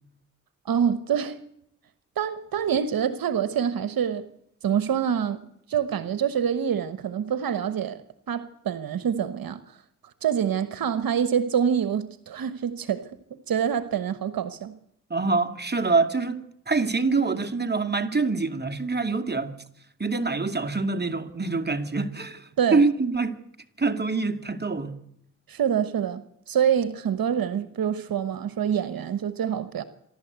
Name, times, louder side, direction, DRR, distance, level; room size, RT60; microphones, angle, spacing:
voice 1, 0.6-1.4 2.2-4.3 4.6-8.0 8.3-9.8 10.2-13.1 13.5-14.8 22.6-22.8 25.5-29.8, right 8 dB, 75° right, 1.2 m, -26 dB
voice 2, 15.1-19.6 20.0-23.4 23.8-25.0, right 3 dB, 30° right, 2.5 m, -25 dB
27.0 x 12.0 x 8.1 m
supercardioid pair, 40°, 35 cm